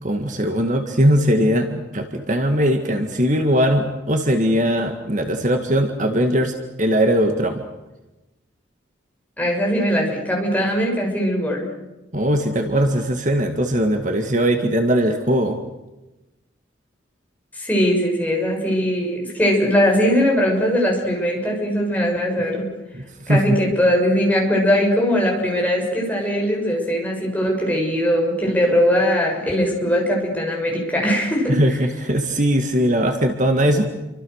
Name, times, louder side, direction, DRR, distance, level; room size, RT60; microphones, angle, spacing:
voice 1, 0.0-7.6 12.1-15.6 22.9-23.6 31.5-33.9, equal, 40° right, 5 dB, 2.0 m, -20 dB
voice 2, 9.4-11.7 17.5-22.7 23.3-31.6, equal, 10° left, 0 dB, 6.7 m, -20 dB
29.0 x 25.0 x 6.6 m, 1.0 s
head